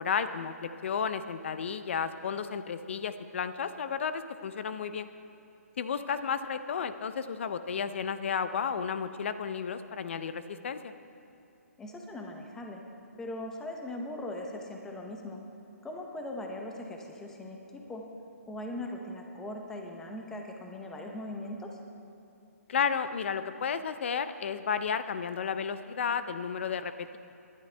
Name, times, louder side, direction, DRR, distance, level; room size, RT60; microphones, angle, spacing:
voice 1, 0.0-5.1 5.8-10.9 22.7-27.2, left 6 dB, 50° left, 12 dB, 0.6 m, -32 dB
voice 2, 11.8-12.8 13.2-15.4 15.8-18.1 18.5-21.8, left 1 dB, 5° left, 2 dB, 0.8 m, -40 dB
19.0 x 11.5 x 3.4 m, 2.7 s
hypercardioid pair, 165°, 9 cm